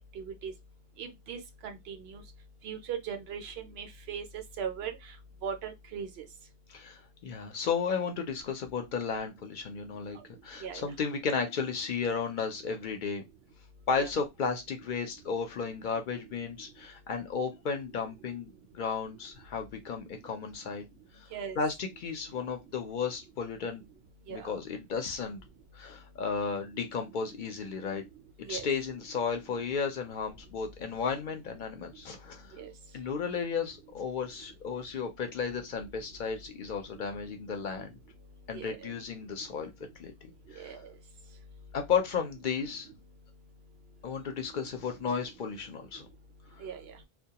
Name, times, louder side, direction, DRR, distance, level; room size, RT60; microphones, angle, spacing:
voice 1, 0.2-0.5 1.0-2.2 2.6-4.2 4.6-4.9 5.4-6.1 10.6-10.8 14.0-14.1 21.3-21.6 24.3-24.5 28.5-28.7 32.6-32.7 38.5-38.8 40.6-40.8 46.6-46.8, right 7 dB, 80° right, 0.8 m, -38 dB
voice 2, 6.7-10.2 10.4-13.2 13.9-20.8 21.1-21.3 21.6-23.8 24.3-25.4 25.7-28.0 28.5-32.6 32.9-37.9 38.5-39.7 40.0-40.1 40.5-40.8 41.7-42.9 44.0-46.1, left 5 dB, 60° left, 0.6 m, -34 dB
2.2 x 2.2 x 2.8 m
omnidirectional pair, 1.1 m